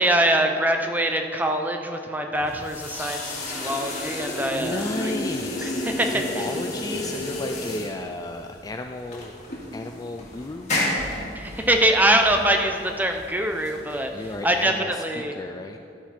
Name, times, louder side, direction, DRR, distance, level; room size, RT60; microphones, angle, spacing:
voice 1, 0.0-5.1 5.6-6.5 11.3-14.1 14.4-15.3, right 1 dB, 10° right, 4 dB, 0.7 m, -23 dB
sound 1, 2.3-14.8, left 1 dB, 40° left, 2.3 m, -32 dB
voice 2, 4.5-9.3 9.7-10.8 14.1-15.0 15.3-15.8, left 2 dB, 20° left, 5 dB, 0.3 m, -34 dB
13.0 x 10.0 x 4.3 m, 2.6 s
head